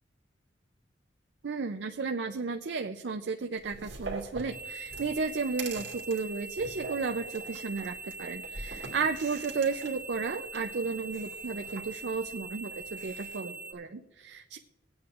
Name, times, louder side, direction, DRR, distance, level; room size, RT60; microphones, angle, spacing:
voice 1, 1.4-14.6, right 4 dB, 65° right, 5 dB, 0.5 m, -33 dB
sound 1, 3.6-13.4, right 3 dB, 85° right, 2.0 m, -44 dB
sound 2, 4.5-13.7, right 4 dB, 10° right, 0.8 m, -43 dB
21.5 x 8.7 x 2.4 m, 1.2 s
head